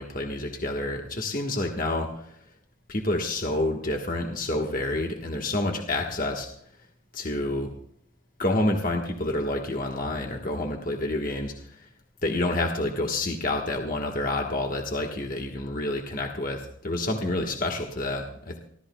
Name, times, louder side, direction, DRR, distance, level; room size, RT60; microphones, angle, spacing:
voice 1, 0.0-2.1 2.9-6.5 7.1-7.7 8.4-11.5 12.2-18.6, left 2 dB, 40° left, 2 dB, 1.3 m, -28 dB
28.5 x 13.0 x 2.3 m, 0.69 s
head